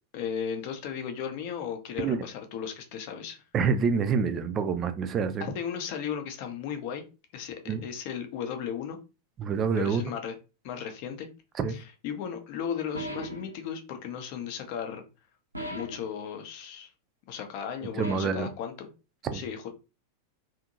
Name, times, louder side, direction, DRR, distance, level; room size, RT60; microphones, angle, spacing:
voice 1, 0.1-3.4 5.4-7.0 7.3-9.0 9.7-10.3 10.6-11.3 11.7-15.0 15.7-16.9 17.3-18.9 19.3-19.7, left 8 dB, 45° left, 0.6 m, -35 dB
voice 2, 3.5-5.4 7.7-7.8 9.4-10.0 11.6-11.8 17.9-18.5 19.2-19.4, right 6 dB, 30° right, 0.4 m, -27 dB
sound 1, 12.9-13.6 15.5-16.1 18.0-18.5, right 1 dB, 85° right, 0.6 m, -37 dB
2.7 x 2.6 x 2.5 m
figure-of-eight pair, 90°, 0 cm